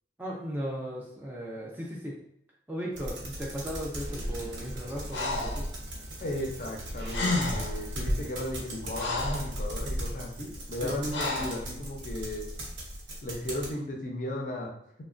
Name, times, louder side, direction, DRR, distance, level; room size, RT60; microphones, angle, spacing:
voice 1, 0.2-2.2 2.7-5.7 10.8-10.9, equal, 10° right, -3 dB, 0.4 m, -36 dB
sound 1, 3.0-13.7, equal, 90° right, 0.8 m, -37 dB
sound 2, 4.0-9.6, right 1 dB, 65° right, 0.5 m, -48 dB
Breathing, 5.1-5.6 6.8-6.9 7.1-7.8 8.5-9.5 11.1-11.6, left 2 dB, 85° left, 0.6 m, -31 dB
voice 2, 6.2-12.5 13.2-14.7, left 1 dB, 45° left, 0 dB, 0.5 m, -35 dB
3.1 x 2.1 x 2.4 m, 0.72 s
head